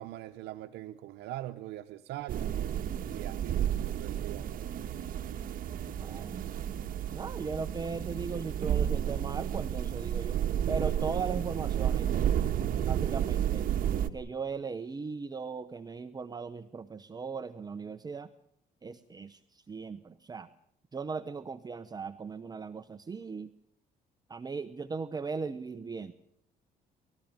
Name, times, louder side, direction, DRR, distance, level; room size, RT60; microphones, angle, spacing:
voice 1, 0.0-2.5 3.1-4.9, right 14 dB, 80° right, 8 dB, 0.9 m, -42 dB
sound 1, 2.3-14.1, right 10 dB, 55° right, 1.5 m, -31 dB
voice 2, 6.0-6.5 7.1-10.4 10.7-12.3 12.9-13.7 14.1-18.3 18.8-20.5 20.9-23.5 24.3-26.1, right 5 dB, 25° right, 11 dB, 0.9 m, -38 dB
30.0 x 14.5 x 8.9 m, 0.76 s
cardioid pair, 110°, 17 cm